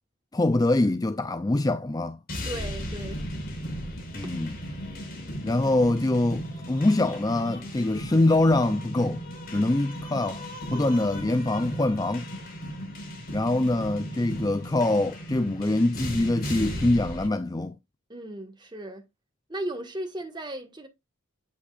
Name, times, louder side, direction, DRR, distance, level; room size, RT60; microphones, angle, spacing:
voice 1, 0.3-2.2 4.1-4.6 5.4-9.2 9.5-10.4 10.7-12.3 13.3-17.7, left 2 dB, 15° left, 0.4 m, -24 dB
sound 1, 2.3-17.3, equal, 45° left, 4.5 m, -36 dB
voice 2, 2.4-3.2 18.1-19.0 19.5-20.9, right 1 dB, 20° right, 1.5 m, -36 dB
8.3 x 8.2 x 2.4 m
head